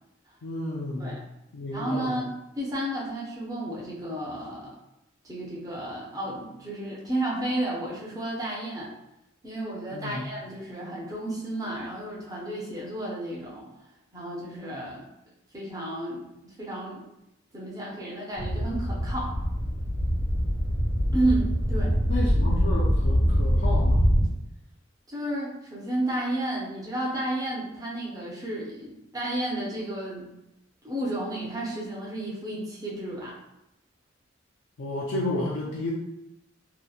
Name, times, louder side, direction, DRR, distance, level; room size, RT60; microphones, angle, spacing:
voice 1, 0.4-1.2 1.5-2.2 9.9-10.2 22.1-24.1 34.8-35.9, left 2 dB, 65° left, -4 dB, 0.4 m, -31 dB
voice 2, 1.7-2.3 2.5-4.7 5.2-8.9 9.4-13.6 14.1-15.1 15.5-17.0 17.5-19.3 21.1-21.9 25.1-30.3 30.8-33.3, right 1 dB, 20° right, -5 dB, 0.5 m, -32 dB
sound 1, 18.4-24.3, equal, 65° right, 1.0 m, -24 dB
2.7 x 2.1 x 2.3 m, 0.87 s
head